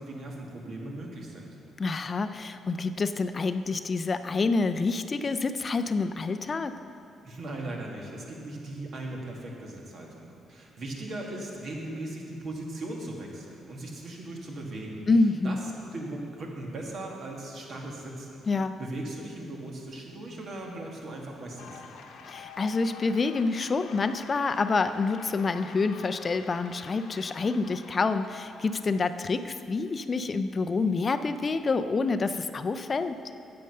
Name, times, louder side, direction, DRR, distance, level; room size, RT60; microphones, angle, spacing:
voice 1, 0.0-1.6 7.2-15.1 15.4-18.4 18.8-21.9, right 1 dB, 55° right, -1 dB, 1.9 m, -38 dB
voice 2, 1.8-6.7 15.1-15.6 18.5-18.7 22.3-33.2, left 3 dB, 35° left, 10 dB, 0.4 m, -27 dB
sound 1, 21.6-28.8, left 6 dB, 85° left, 0.9 m, -48 dB
9.1 x 7.7 x 6.5 m, 2.7 s
cardioid pair, 90°, 0 cm